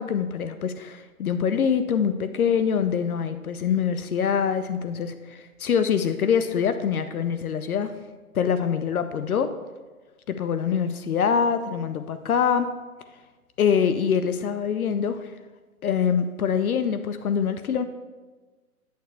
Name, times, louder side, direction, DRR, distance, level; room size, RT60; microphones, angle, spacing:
voice 1, 0.0-7.9 8.3-9.5 10.3-12.7 13.6-15.3 15.8-17.8, left 7 dB, 70° left, 10 dB, 0.6 m, -24 dB
8.9 x 6.7 x 2.3 m, 1.3 s
hypercardioid pair, 175°, 45 cm